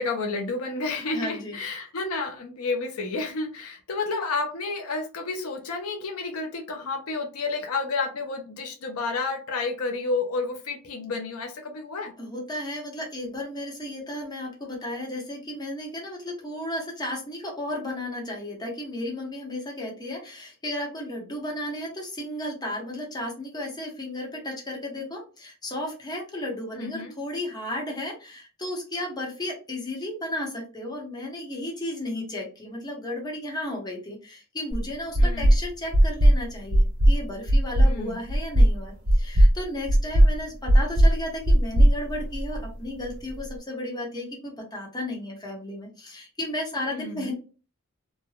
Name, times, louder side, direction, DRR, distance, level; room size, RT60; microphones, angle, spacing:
voice 1, 0.0-12.1 26.7-27.1 35.2-35.5 37.8-38.2 46.9-47.3, left 3 dB, 80° left, 5 dB, 0.5 m, -30 dB
voice 2, 1.1-1.6 12.2-47.3, left 1 dB, 20° left, -1 dB, 0.9 m, -34 dB
sound 1, 34.7-34.8 35.1-35.6 35.9-36.4 36.7-37.2 37.5-37.9 38.3-38.7 39.1-39.5 39.9-40.3 40.7-41.1 41.4-42.7, right 1 dB, 75° right, 1.0 m, -17 dB
3.1 x 2.2 x 2.3 m, 0.35 s
head